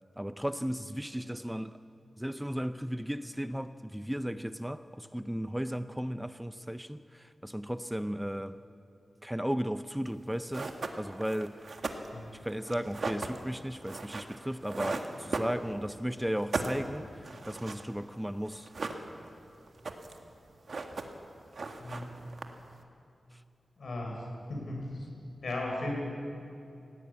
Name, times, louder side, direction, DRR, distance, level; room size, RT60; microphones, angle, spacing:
voice 1, 0.2-1.8 2.2-8.6 9.2-11.7 12.3-18.7 23.3-23.4, equal, 5° right, 11 dB, 0.5 m, -35 dB
sound 1, 10.1-10.2 10.5-16.0 16.3-18.1 18.5-19.4 19.7-20.3 20.5-21.3 21.5-22.8, right 3 dB, 60° right, 1.6 m, -37 dB
voice 2, 23.8-24.2 24.5-25.0 25.4-25.9, left 2 dB, 70° left, -1 dB, 6.3 m, -36 dB
19.0 x 16.5 x 8.6 m, 2.7 s
wide cardioid pair, 105°, 0 cm